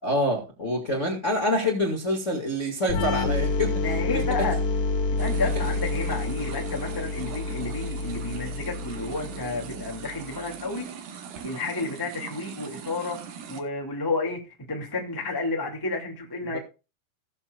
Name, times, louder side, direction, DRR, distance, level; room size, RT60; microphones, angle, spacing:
voice 1, 0.0-4.5 16.4-16.6, left 1 dB, 35° left, 0 dB, 1.1 m, -27 dB
sound 1, 2.9-10.5, left 3 dB, 60° left, 2.5 m, -29 dB
voice 2, 3.8-4.6 5.1-10.8 11.4-13.2 13.5-14.4 14.7-16.6, left 3 dB, 15° left, -1 dB, 0.8 m, -31 dB
sound 2, 5.2-13.6, right 6 dB, 65° right, 2.1 m, -41 dB
18.5 x 7.4 x 2.5 m, 0.29 s
omnidirectional pair, 5.5 m